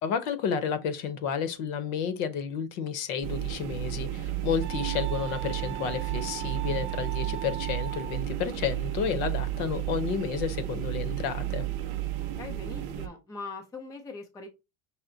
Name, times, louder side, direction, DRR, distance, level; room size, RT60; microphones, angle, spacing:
voice 1, 0.0-11.7, left 7 dB, 70° left, 1.0 m, -31 dB
sound 1, 3.2-13.1, right 13 dB, 45° right, 0.7 m, -32 dB
Wind instrument woodwind instrument, 4.6-8.3, right 13 dB, 80° right, 0.8 m, -40 dB
voice 2, 12.1-14.5, left 3 dB, 10° left, 0.4 m, -42 dB
5.8 x 2.1 x 3.8 m
cardioid pair, 170°, 41 cm